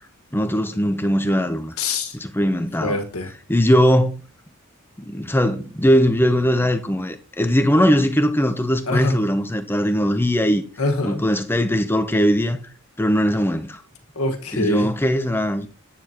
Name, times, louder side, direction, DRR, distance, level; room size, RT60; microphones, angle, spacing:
voice 1, 0.3-1.7 2.1-3.0 3.5-4.2 5.0-10.6 11.0-12.7 13.0-13.8 14.5-15.7, equal, 10° left, 0.8 m, -20 dB
voice 2, 1.8-2.1 2.8-3.3 8.9-9.1 10.8-11.3 14.1-14.9, left 2 dB, 85° left, 1.7 m, -24 dB
9.7 x 8.5 x 3.0 m
head